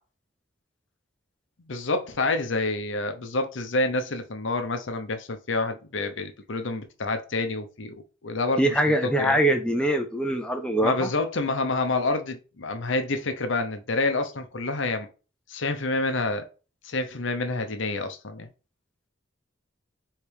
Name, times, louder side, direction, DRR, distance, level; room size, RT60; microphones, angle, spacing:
voice 1, 1.7-7.9 8.2-9.4 10.8-15.1 15.5-16.5 16.8-18.5, left 2 dB, 70° left, 0.8 m, -28 dB
voice 2, 8.6-11.1, right 1 dB, 5° left, 0.5 m, -23 dB
3.4 x 3.3 x 4.7 m
head